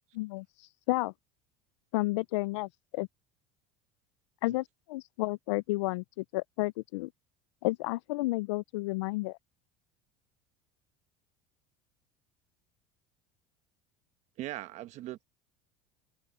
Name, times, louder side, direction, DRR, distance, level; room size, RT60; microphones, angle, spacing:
voice 1, 0.1-0.5 0.9-1.1 1.9-3.1 4.4-7.1 7.6-9.4, left 21 dB, 85° left, 0.4 m, -31 dB
voice 2, 14.4-15.3, right 15 dB, 55° right, 1.1 m, -40 dB
open air
supercardioid pair, 120°, 15 cm